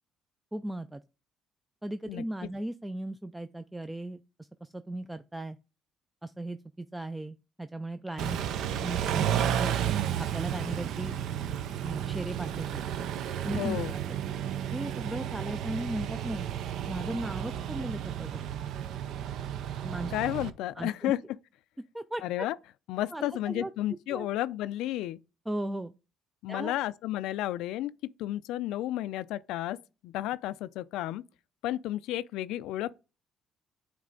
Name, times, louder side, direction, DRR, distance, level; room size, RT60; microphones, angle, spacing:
voice 1, 0.5-1.0 1.8-5.6 6.2-8.4 8.8-9.7 10.2-11.2 11.8-12.8 13.4-13.8 14.1-14.2 14.7-16.5 16.9-18.4 19.8-20.1 20.8-21.1 21.9-22.2 23.1-23.7 24.1-24.3 25.5-25.9 26.5-26.7, right 1 dB, 10° right, 0.3 m, -37 dB
Car / Idling / Accelerating revving vroom, 8.2-20.5, right 10 dB, 70° right, 0.5 m, -32 dB
voice 2, 13.6-13.9 20.1-21.2 22.2-22.6 22.9-25.2 26.4-29.8 30.0-31.2 31.6-32.9, left 14 dB, 90° left, 0.3 m, -32 dB
8.8 x 3.2 x 3.8 m
cardioid pair, 125°, 0 cm